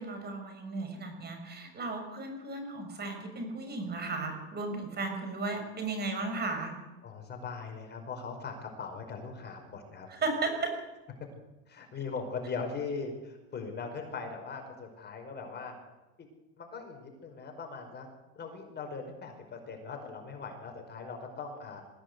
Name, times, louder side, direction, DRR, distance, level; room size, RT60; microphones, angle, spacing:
voice 1, 0.0-6.7 10.1-10.8, right 3 dB, 30° right, 5 dB, 6.2 m, -35 dB
voice 2, 7.0-10.1 11.7-15.7 16.6-18.1 18.4-21.8, left 4 dB, 30° left, 4 dB, 5.4 m, -40 dB
22.0 x 16.0 x 8.3 m, 1.1 s
supercardioid pair, 115°, 33 cm